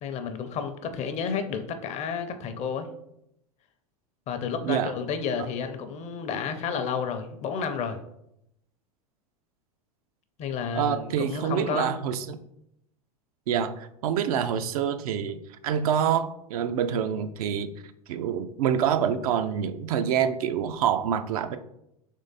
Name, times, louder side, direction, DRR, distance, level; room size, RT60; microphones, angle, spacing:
voice 1, 0.0-2.9 4.3-8.0 10.4-12.0, left 6 dB, 35° left, 9 dB, 0.6 m, -31 dB
voice 2, 10.7-12.4 13.5-15.4 15.6-17.7 18.1-21.6, right 8 dB, 70° right, 10 dB, 0.4 m, -26 dB
3.6 x 3.2 x 4.1 m, 0.79 s
hypercardioid pair, 95°, 19 cm